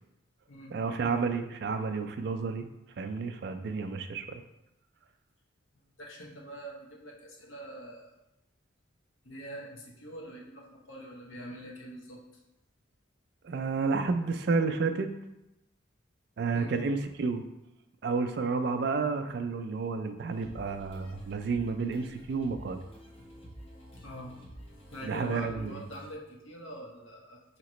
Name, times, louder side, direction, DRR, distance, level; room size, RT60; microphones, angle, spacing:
voice 1, 0.7-2.7 3.0-4.4 13.4-15.1 16.4-17.4 18.0-22.8 25.0-25.8, right 4 dB, 55° right, 8 dB, 0.3 m, -31 dB
voice 2, 5.7-8.1 9.2-12.4 16.5-16.7 24.0-24.4 24.9-27.6, right 1 dB, 80° left, -2 dB, 0.9 m, -44 dB
sound 1, 20.3-26.1, equal, 30° left, 0.7 m, -50 dB
4.9 x 2.9 x 3.0 m, 0.92 s
head